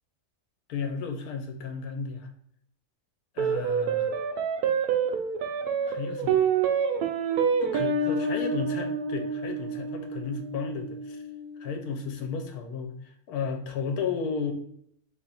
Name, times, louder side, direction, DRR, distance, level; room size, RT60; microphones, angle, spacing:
voice 1, 0.7-2.3 3.3-4.1 5.8-6.4 7.6-11.2 11.6-14.5, left 5 dB, 80° left, 5 dB, 1.2 m, -33 dB
sound 1, 3.4-12.0, right 5 dB, 85° right, 1.1 m, -28 dB
3.5 x 2.8 x 3.9 m, 0.69 s
omnidirectional pair, 1.6 m